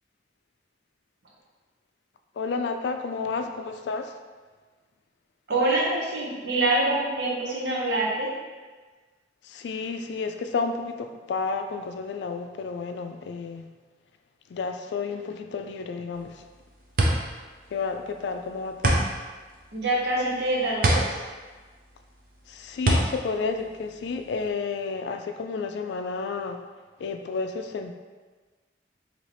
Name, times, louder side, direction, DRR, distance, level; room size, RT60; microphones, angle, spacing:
voice 1, 2.4-4.1 5.8-5.9 9.4-13.7 14.5-16.4 17.7-19.1 22.5-26.6 27.0-27.9, left 4 dB, 80° left, 6 dB, 0.3 m, -31 dB
voice 2, 5.5-8.3 19.7-21.2, right 2 dB, 75° right, -4 dB, 0.9 m, -25 dB
sound 1, 16.2-24.5, right 1 dB, 50° right, 0.5 m, -26 dB
4.0 x 2.9 x 3.3 m, 1.4 s
head